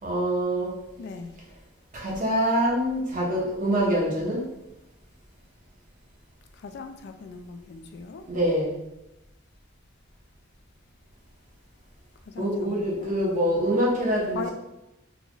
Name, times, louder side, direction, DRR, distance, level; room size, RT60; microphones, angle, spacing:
voice 1, 0.0-0.7 1.9-4.5 8.3-8.8 12.4-14.5, equal, 40° right, -4 dB, 0.9 m, -25 dB
voice 2, 1.0-1.3 6.6-8.3 12.3-13.2 14.3-14.5, left 4 dB, 55° left, 7 dB, 0.3 m, -39 dB
3.9 x 2.3 x 2.9 m, 0.93 s
head